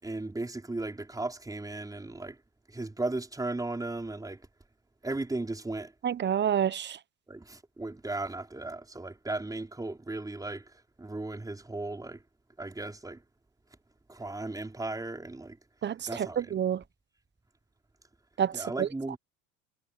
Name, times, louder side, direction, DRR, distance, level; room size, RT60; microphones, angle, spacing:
voice 1, 0.0-2.4 2.7-4.4 5.0-5.9 7.3-10.7 11.0-12.2 12.6-13.2 14.1-15.6 16.1-16.5 18.5-19.2, right 2 dB, 10° right, 5.1 m, -36 dB
voice 2, 6.0-7.0 15.8-16.8 18.4-18.9, right 9 dB, 30° right, 1.1 m, -28 dB
hypercardioid pair, 90°, 35 cm